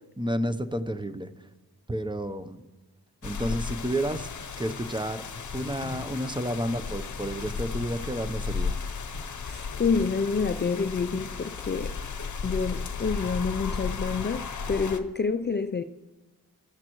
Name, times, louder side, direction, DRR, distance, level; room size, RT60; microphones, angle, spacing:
voice 1, 0.2-1.5 1.9-2.6 3.2-4.3 4.6-5.3 5.5-8.8, equal, 10° right, 0.8 m, -31 dB
sound 1, 3.2-15.0, left 5 dB, 50° left, 0.9 m, -34 dB
voice 2, 9.4-11.9 12.4-15.8, left 5 dB, 30° left, 0.5 m, -28 dB
21.0 x 13.5 x 3.1 m
cardioid pair, 60°, 37 cm